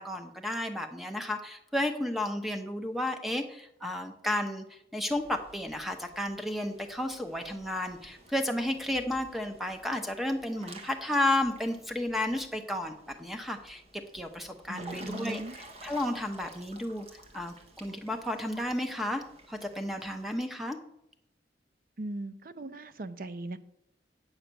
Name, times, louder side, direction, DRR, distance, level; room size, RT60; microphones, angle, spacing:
voice 1, 0.0-12.9 13.2-13.8 14.1-15.4 15.8-17.1 17.3-19.2 19.5-20.8, left 1 dB, ahead, 5 dB, 0.9 m, -32 dB
Water / Splash splatter / Drip, 5.1-20.3, right 1 dB, 35° right, 1.2 m, -51 dB
voice 2, 14.7-15.6 22.0-23.6, right 2 dB, 50° right, 12 dB, 0.6 m, -39 dB
8.9 x 5.9 x 6.8 m, 0.80 s
head